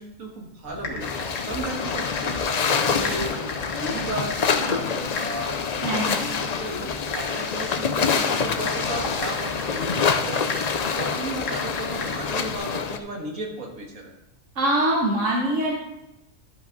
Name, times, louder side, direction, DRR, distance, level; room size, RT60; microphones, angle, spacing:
voice 1, 0.0-3.5 3.7-6.3 6.6-14.1, right 2 dB, 85° right, -1 dB, 2.1 m, -35 dB
Typing, 0.6-12.6, left 2 dB, 70° left, 1.8 m, -37 dB
sound 1, 1.0-13.0, left 6 dB, 50° left, 0.5 m, -26 dB
voice 2, 5.8-6.3 14.5-15.7, right 1 dB, 70° right, -2 dB, 1.5 m, -23 dB
12.5 x 6.0 x 3.9 m, 0.89 s
omnidirectional pair, 1.4 m